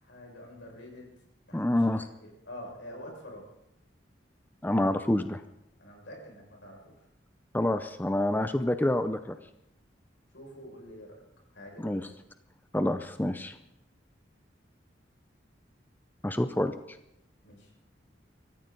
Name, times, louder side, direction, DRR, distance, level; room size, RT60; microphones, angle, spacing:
voice 1, 0.0-1.1 1.5-1.8 2.2-3.4 5.8-6.9 10.3-11.2 11.5-12.1 17.4-17.7, left 1 dB, 75° left, 0 dB, 6.1 m, -46 dB
voice 2, 1.5-2.1 4.6-5.4 7.5-9.4 11.8-12.1 12.7-13.6 16.2-17.0, left 1 dB, 10° left, 9 dB, 0.5 m, -27 dB
25.5 x 14.0 x 4.0 m, 0.83 s
head